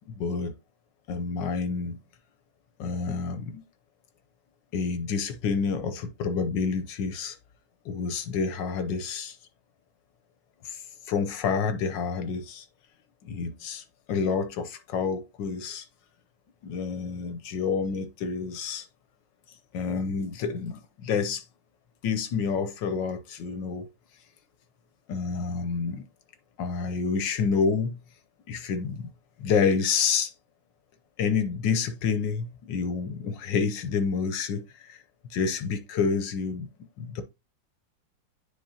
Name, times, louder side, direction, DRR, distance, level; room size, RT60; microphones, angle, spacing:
voice 1, 0.1-0.5 1.1-2.0 2.8-3.6 4.7-7.4 7.8-9.4 10.6-12.7 13.2-15.9 16.6-18.9 19.7-21.4 22.0-23.9 25.1-26.1 26.6-28.0 28.5-29.1 29.4-30.3 31.2-35.0 35.3-36.7 37.0-37.2, left 5 dB, 70° left, 1.4 m, -28 dB
9.8 x 4.2 x 2.8 m
omnidirectional pair, 2.2 m